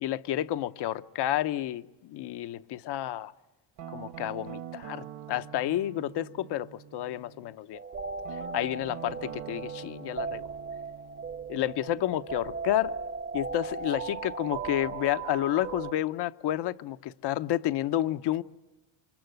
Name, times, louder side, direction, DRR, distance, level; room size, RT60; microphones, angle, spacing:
voice 1, 0.0-3.3 3.9-7.8 8.5-10.5 11.5-12.9 13.3-18.4, left 13 dB, 55° left, 0.9 m, -30 dB
Guitar, 3.8-7.6 8.2-13.0, right 11 dB, 60° right, 1.8 m, -46 dB
sound 1, 7.7-15.9, right 4 dB, 25° right, 1.0 m, -37 dB
28.0 x 24.5 x 7.9 m
cardioid pair, 130°, 47 cm